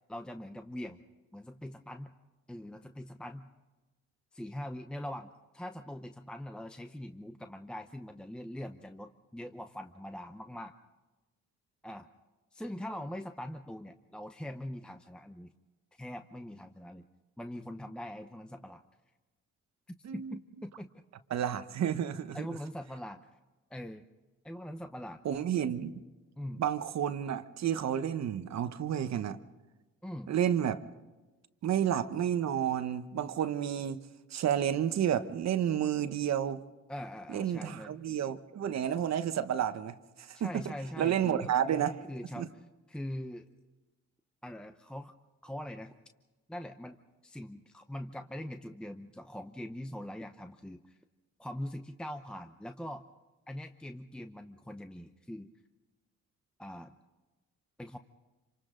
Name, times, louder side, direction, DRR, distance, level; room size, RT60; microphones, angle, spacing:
voice 1, 0.1-1.0 1.3-2.1 2.5-3.5 4.3-10.7 11.8-12.1 12.5-15.5 15.9-17.0 17.4-18.8 20.1-20.9 22.3-23.3 23.7-24.0 24.4-25.2 26.4-26.7 30.0-30.3 36.9-37.9 40.3-41.5 42.1-42.5 42.9-43.5 44.4-45.1 45.4-45.9 46.5-47.0 47.2-51.0 51.4-53.1 53.5-55.5 56.6-56.9 57.8-58.0, left 1 dB, 5° left, 0.8 m, -42 dB
voice 2, 20.0-20.4 21.3-22.6 25.2-25.9 26.6-29.4 30.3-30.8 31.6-34.0 34.3-36.6 37.3-42.0 42.4-42.5, right 9 dB, 60° right, 1.1 m, -31 dB
27.0 x 25.5 x 3.9 m
cardioid pair, 90°, 30 cm